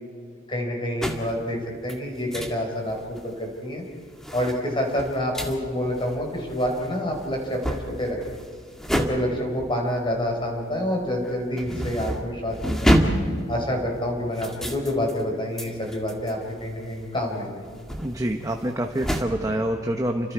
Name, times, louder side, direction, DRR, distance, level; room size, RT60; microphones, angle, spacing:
voice 1, 0.5-3.8 4.3-8.2 8.9-13.0 13.5-17.6, left 1 dB, 25° left, 1 dB, 4.5 m, -27 dB
sound 1, 1.0-1.4 1.8-2.6 2.9-3.4 3.8-10.8 11.0-19.2, equal, ahead, 2.0 m, -29 dB
voice 2, 18.0-20.3, right 1 dB, 15° right, 4 dB, 1.1 m, -26 dB
30.0 x 26.0 x 4.8 m, 2.2 s
head